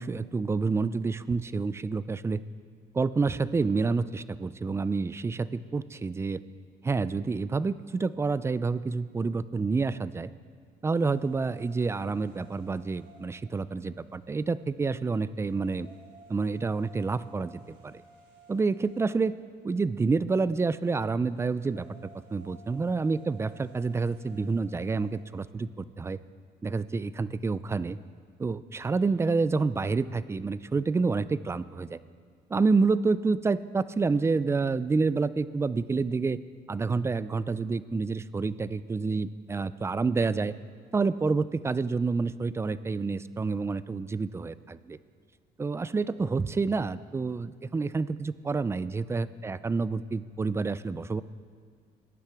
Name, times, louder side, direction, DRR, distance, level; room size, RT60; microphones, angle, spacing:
voice 1, 0.0-2.4 2.9-6.4 6.8-10.3 10.8-15.9 16.3-17.5 17.8-17.9 18.5-19.3 19.6-21.9 22.3-26.2 26.6-28.0 28.4-32.0 32.5-36.4 36.7-40.5 40.9-45.0 45.6-51.2, right 4 dB, 15° right, 16 dB, 0.3 m, -28 dB
sound 1, 10.9-25.4, right 3 dB, 80° right, 3.2 m, -56 dB
18.5 x 10.0 x 3.5 m, 2.1 s
cardioid pair, 110°, 17 cm